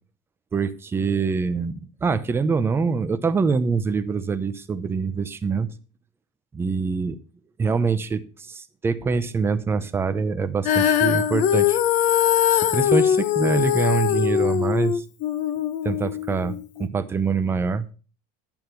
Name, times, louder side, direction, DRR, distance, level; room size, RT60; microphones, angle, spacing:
voice 1, 0.5-5.7 6.5-7.2 7.6-8.2 8.5-11.8 12.5-14.9 15.8-17.9, right 5 dB, 15° right, 10 dB, 0.7 m, -24 dB
Female singing, 10.6-16.9, left 9 dB, 45° left, 0.9 m, -21 dB
11.0 x 8.9 x 4.6 m, 0.36 s
cardioid pair, 165°, 18 cm